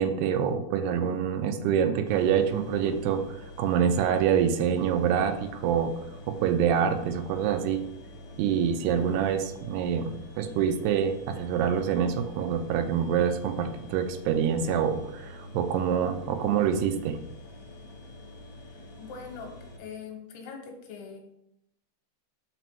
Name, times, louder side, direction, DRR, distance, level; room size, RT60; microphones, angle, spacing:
voice 1, 0.0-3.2 3.6-5.9 6.3-7.8 8.4-17.2, right 8 dB, 85° right, 8 dB, 2.7 m, -26 dB
sound 1, 2.1-19.8, left 1 dB, 55° left, 2.2 m, -46 dB
voice 2, 18.7-21.2, left 5 dB, 80° left, 3 dB, 3.2 m, -42 dB
6.0 x 5.1 x 5.6 m, 0.82 s
omnidirectional pair, 4.7 m